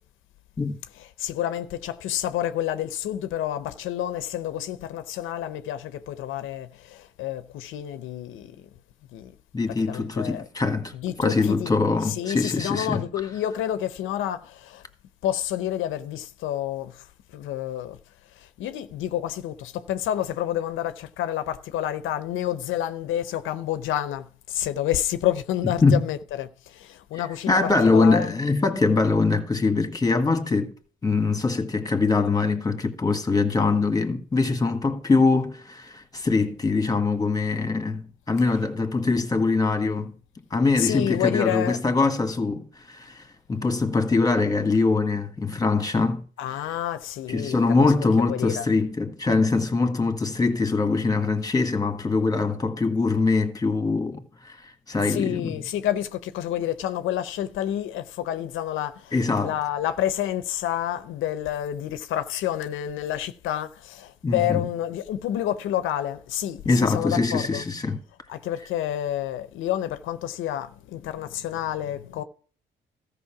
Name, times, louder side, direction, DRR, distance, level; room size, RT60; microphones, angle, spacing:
voice 1, 0.9-8.6 9.1-9.3 9.7-10.5 10.9-14.8 15.2-17.0 17.3-18.0 18.4-28.3 38.4-38.7 40.7-41.8 46.4-48.7 55.0-67.7 68.3-72.2, left 11 dB, 85° left, 0.7 m, -29 dB
voice 2, 9.5-10.9 11.2-13.1 25.8-26.0 27.5-30.7 31.0-40.1 40.5-43.2 43.5-46.2 47.3-54.6 54.9-55.6 59.1-59.5 64.2-64.6 66.6-68.0, left 3 dB, 20° left, 1.6 m, -23 dB
13.5 x 5.3 x 5.8 m
cardioid pair, 90°, 20 cm